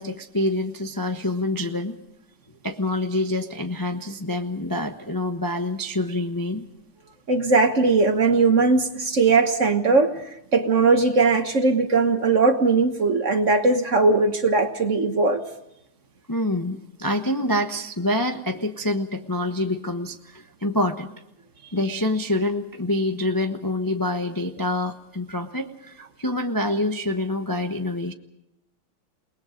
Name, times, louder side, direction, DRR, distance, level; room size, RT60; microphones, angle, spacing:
voice 1, 0.0-2.0 2.6-6.6 16.3-21.1 21.7-28.1, left 1 dB, 20° left, 5 dB, 0.6 m, -26 dB
voice 2, 7.3-10.1 10.5-15.4, right 3 dB, 40° right, 7 dB, 1.4 m, -19 dB
29.0 x 20.0 x 5.2 m, 0.81 s
omnidirectional pair, 2.3 m